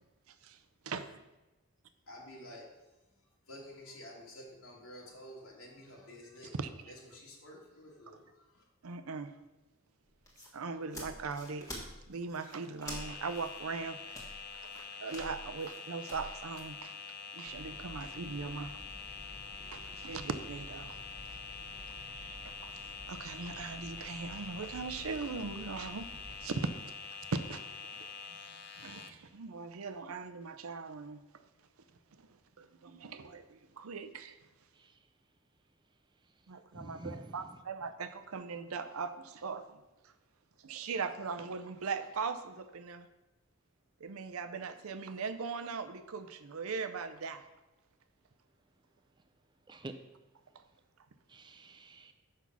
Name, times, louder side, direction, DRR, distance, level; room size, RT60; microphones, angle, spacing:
voice 1, 0.3-0.6 0.8-1.2 6.5-7.0 8.1-8.2 8.8-9.3 10.5-11.8 12.1-14.2 14.5-17.0 17.3-18.8 19.7-21.0 21.8-22.8 23.1-26.1 26.4-27.0 27.3-27.6 28.0-28.1 28.8-31.2 32.6-34.4 36.5-40.1 40.6-43.1 44.0-47.4, right 4 dB, 90° right, 11 dB, 0.6 m, -40 dB
voice 2, 2.1-2.6 3.5-6.5 7.1-8.2, left 1 dB, 90° left, -4 dB, 2.3 m, -50 dB
sound 1, 10.1-16.7, equal, 15° left, 1.5 m, -48 dB
sound 2, 12.8-29.1, left 5 dB, 50° left, 0.7 m, -46 dB
sound 3, 17.4-26.7, equal, 45° right, 1.1 m, -52 dB
voice 3, 34.7-35.1 36.2-36.3 36.7-37.5 49.7-49.9 51.3-52.1, right 2 dB, 20° right, 7 dB, 0.5 m, -49 dB
6.1 x 5.5 x 6.0 m, 1.0 s
head